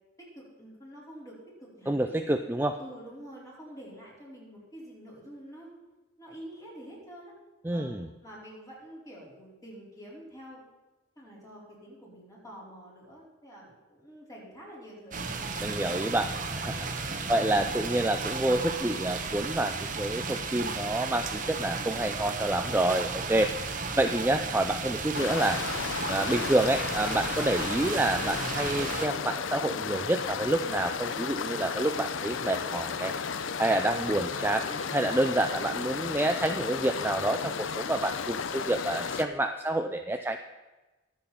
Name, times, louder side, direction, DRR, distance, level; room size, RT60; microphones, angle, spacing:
voice 1, 0.2-2.1 2.8-5.8 6.2-7.3 7.7-7.9 8.2-10.6 11.2-16.3 17.1-17.7, equal, 20° left, -6 dB, 4.6 m, -47 dB
voice 2, 1.9-2.8 7.6-8.1 15.6-25.6 26.1-33.1 33.6-40.4, right 1 dB, 10° right, 6 dB, 0.4 m, -28 dB
sound 1, 15.1-29.1, right 4 dB, 40° right, 1.1 m, -34 dB
sound 2, 25.1-39.3, left 6 dB, 70° left, 0.6 m, -34 dB
22.5 x 7.6 x 4.3 m, 1.2 s
head